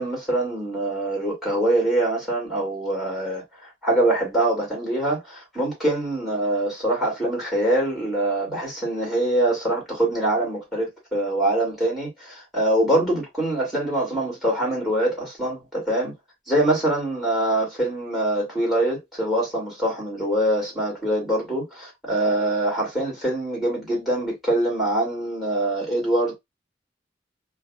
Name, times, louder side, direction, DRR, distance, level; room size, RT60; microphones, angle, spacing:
voice 1, 0.0-16.2 16.5-26.4, right 1 dB, ahead, 2.5 m, -24 dB
5.5 x 2.5 x 2.4 m
head